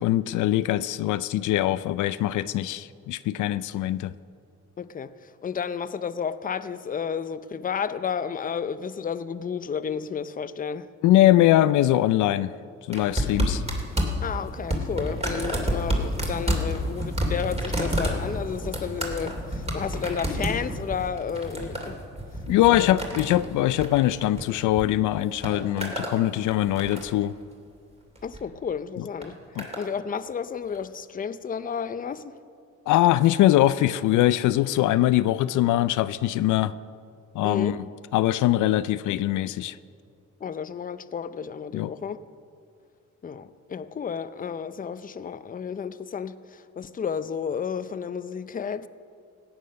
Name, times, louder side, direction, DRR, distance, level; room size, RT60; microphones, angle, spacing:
voice 1, 0.0-4.1 11.0-12.5 12.9-13.6 22.5-27.3 29.0-29.1 29.6-29.7 32.9-36.7 37.3-37.8 38.1-39.8 41.7-41.9, left 14 dB, 80° left, 0.5 m, -22 dB
voice 2, 4.8-5.1 5.4-10.9 14.2-22.0 22.7-22.9 28.2-29.4 29.8-32.3 37.4-37.8 40.4-42.2 43.2-48.9, left 7 dB, 30° left, 0.6 m, -32 dB
sound 1, 12.9-24.8 25.1-26.2 26.5-27.2 28.1-28.4 29.2-29.9 30.7-30.8, equal, 20° right, 2.8 m, -29 dB
16.5 x 8.9 x 6.4 m
cardioid pair, 90°, 30 cm